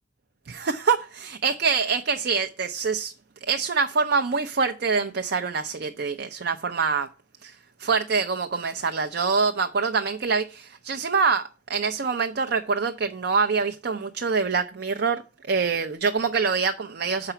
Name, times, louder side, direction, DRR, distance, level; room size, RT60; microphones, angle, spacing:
voice 1, 0.5-3.1 3.5-7.1 7.4-15.2 15.5-17.3, right 5 dB, 60° right, 0.6 m, -25 dB
6.8 x 5.0 x 5.6 m
head